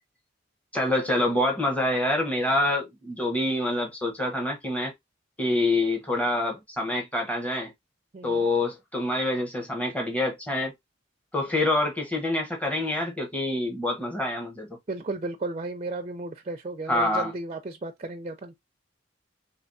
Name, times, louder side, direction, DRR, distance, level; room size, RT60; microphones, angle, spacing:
voice 1, 0.7-4.9 5.4-7.7 8.2-10.7 11.3-14.8 16.9-17.3, left 1 dB, 10° left, 0.8 m, -26 dB
voice 2, 8.1-8.5 14.9-18.5, right 2 dB, 35° right, 0.4 m, -34 dB
3.3 x 3.2 x 2.6 m
head